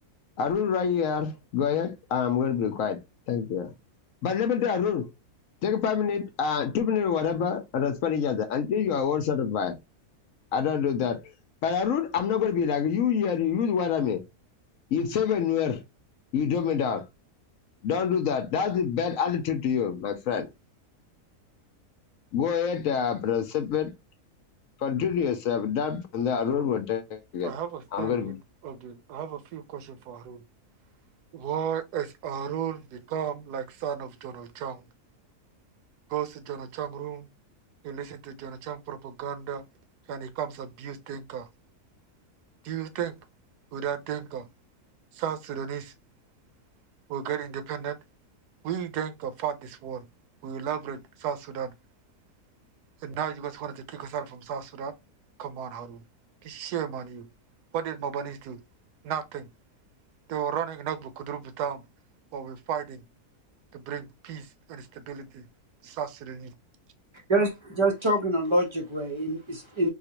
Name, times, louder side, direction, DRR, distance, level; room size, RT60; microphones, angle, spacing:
voice 1, 0.4-3.0 3.3-3.7 4.2-5.1 5.6-9.8 10.5-11.3 11.6-14.2 14.9-15.8 16.3-17.0 17.8-20.5 22.3-23.9 24.8-27.5 27.9-28.4, left 7 dB, 65° left, 0.9 m, -26 dB
voice 2, 27.4-30.4 31.3-34.8 36.1-37.3 37.8-39.6 40.1-41.5 42.6-43.2 43.7-44.5 45.1-45.9 47.1-48.0 48.6-50.1 50.4-51.7 53.0-54.9 55.4-56.0 56.4-57.3 57.7-58.6 59.0-59.5 60.3-61.8 62.3-63.0 63.7-65.5 65.8-66.5, right 8 dB, 90° right, 1.2 m, -34 dB
voice 3, 67.3-69.9, right 1 dB, 30° right, 0.5 m, -25 dB
4.3 x 2.4 x 2.8 m
omnidirectional pair, 1.6 m